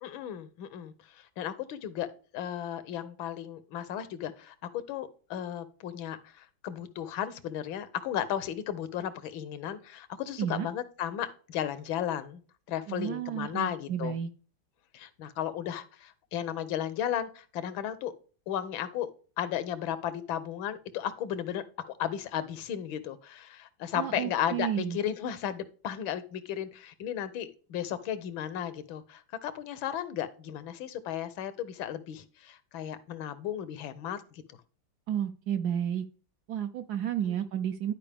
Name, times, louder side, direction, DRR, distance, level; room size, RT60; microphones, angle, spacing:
voice 1, 0.0-4.5 4.9-12.4 12.7-14.1 14.9-18.1 18.5-19.1 19.4-34.4 37.2-37.4, left 10 dB, 85° left, 13 dB, 1.6 m, -35 dB
voice 2, 12.9-14.3 24.0-25.0 35.1-36.0 36.5-37.9, right 9 dB, 75° right, 9 dB, 0.9 m, -31 dB
11.0 x 4.9 x 3.4 m, 0.39 s
omnidirectional pair, 2.1 m